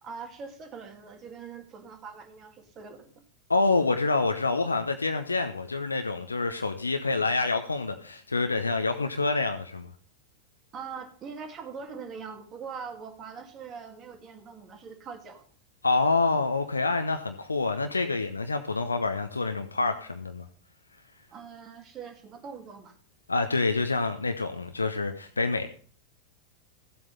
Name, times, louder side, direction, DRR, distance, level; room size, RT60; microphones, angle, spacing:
voice 1, 0.0-3.2 10.7-15.5 21.3-23.0, right 5 dB, 30° right, 6 dB, 2.3 m, -42 dB
voice 2, 3.5-9.9 15.8-20.5 23.3-25.7, left 3 dB, 80° left, 7 dB, 0.9 m, -27 dB
14.0 x 7.9 x 5.5 m, 0.42 s
figure-of-eight pair, 90°, 0 cm